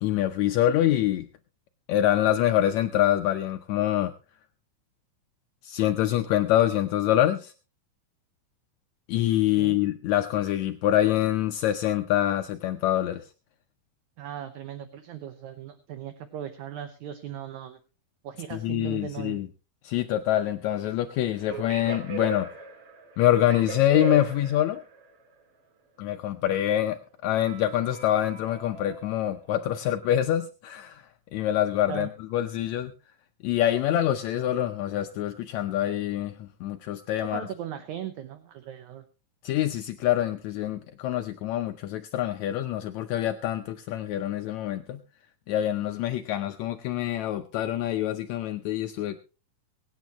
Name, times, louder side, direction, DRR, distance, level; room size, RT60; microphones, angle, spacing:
voice 1, 0.0-1.3 1.9-4.1 5.6-7.5 9.1-13.2 18.5-19.5 19.8-22.5 23.2-24.8 26.0-31.1 31.3-32.9 33.4-37.5 39.4-45.0 45.5-49.2, left 12 dB, 80° left, 7 dB, 1.6 m, -25 dB
voice 2, 14.2-17.8 18.2-19.4 31.9-32.1 37.2-39.1, right 10 dB, 70° right, 9 dB, 2.1 m, -38 dB
sound 1, 21.4-25.0 27.4-29.6, right 4 dB, 45° right, 2.7 m, -37 dB
24.0 x 9.2 x 3.0 m, 0.33 s
omnidirectional pair, 4.0 m